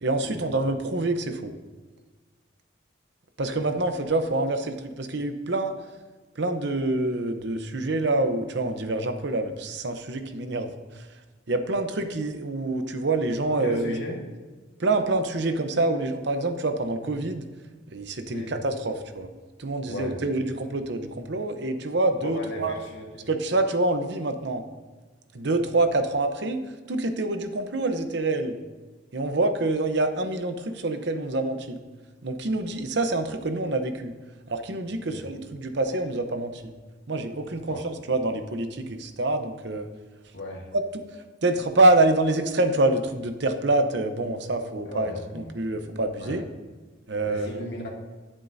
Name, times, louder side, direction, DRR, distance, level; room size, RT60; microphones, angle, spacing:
voice 1, 0.0-1.5 3.4-5.7 6.4-10.7 11.5-14.0 14.8-17.5 17.9-19.3 19.6-22.7 23.3-24.6 25.3-26.6 26.9-28.6 29.1-31.8 32.2-34.1 34.5-36.6 37.1-39.9 41.4-46.5 47.1-47.7, right 2 dB, 60° right, 7 dB, 0.8 m, -26 dB
voice 2, 13.6-14.2 18.3-18.5 19.9-20.2 22.2-23.3 35.1-35.2 37.7-37.9 40.3-40.7 44.9-45.6 46.2-46.4 47.3-47.9, left 1 dB, 60° left, -2 dB, 2.1 m, -36 dB
18.0 x 7.4 x 2.7 m, 1.4 s
head